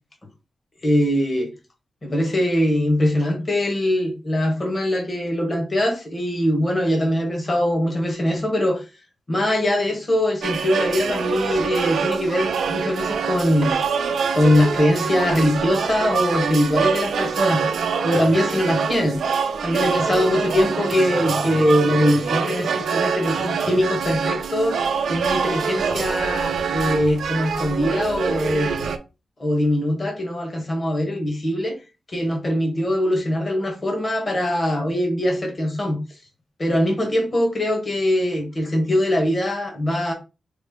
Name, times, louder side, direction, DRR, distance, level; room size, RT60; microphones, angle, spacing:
voice 1, 0.8-1.5 2.0-8.9 9.3-13.8 14.3-17.6 18.0-19.2 19.6-24.8 25.1-28.8 29.4-31.8 32.1-36.0 36.6-40.1, left 1 dB, 30° left, 1.0 m, -22 dB
sound 1, 10.4-29.0, right 6 dB, 90° right, 0.4 m, -25 dB
4.8 x 2.0 x 3.6 m
wide cardioid pair, 130°, 0 cm